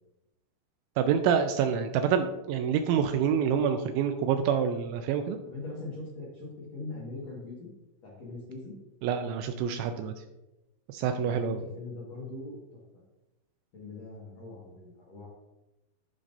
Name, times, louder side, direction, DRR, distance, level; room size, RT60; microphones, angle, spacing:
voice 1, 1.0-5.4 9.0-10.1 10.9-11.6, right 7 dB, 85° right, 6 dB, 2.7 m, -27 dB
voice 2, 5.4-7.7 8.0-8.7 11.2-12.6 13.7-15.3, left 3 dB, 90° left, -5 dB, 1.4 m, -41 dB
13.0 x 5.5 x 2.6 m, 0.98 s
omnidirectional pair, 5.7 m